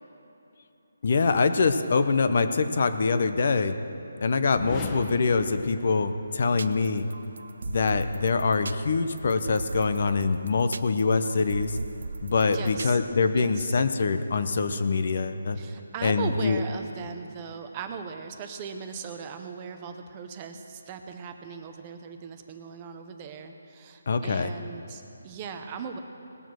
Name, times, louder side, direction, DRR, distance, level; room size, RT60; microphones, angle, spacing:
voice 1, 1.0-3.8 4.2-7.1 7.7-11.8 12.2-15.6 16.0-16.6 24.1-24.5, left 4 dB, 45° left, 9 dB, 0.7 m, -24 dB
sound 1, 4.5-6.5, left 3 dB, 15° left, 0.8 m, -38 dB
sound 2, 6.6-12.9, right 2 dB, 75° right, 0.5 m, -38 dB
voice 2, 12.5-13.0 13.3-13.8 15.5-26.0, right 6 dB, 20° right, 6 dB, 0.6 m, -39 dB
19.0 x 7.1 x 6.2 m, 3.0 s
hypercardioid pair, 170°, 0 cm